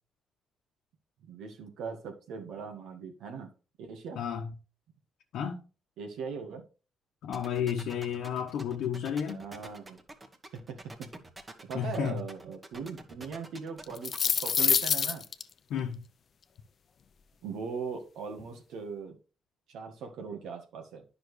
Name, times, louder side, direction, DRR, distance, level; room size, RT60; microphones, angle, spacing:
voice 1, 1.2-3.5 3.8-4.2 6.0-6.6 9.3-10.0 10.5-10.9 11.6-15.2 17.4-19.1 19.7-21.0, right 5 dB, 85° right, 1.8 m, -40 dB
voice 2, 4.2-4.5 5.3-5.6 7.2-9.4 11.7-12.2 15.7-16.1, left 8 dB, 80° left, 1.0 m, -32 dB
sound 1, 7.3-14.6, right 2 dB, 25° right, 1.3 m, -47 dB
sound 2, 13.8-15.4, left 6 dB, 50° left, 0.5 m, -26 dB
9.7 x 5.9 x 3.2 m
cardioid pair, 90°, 0 cm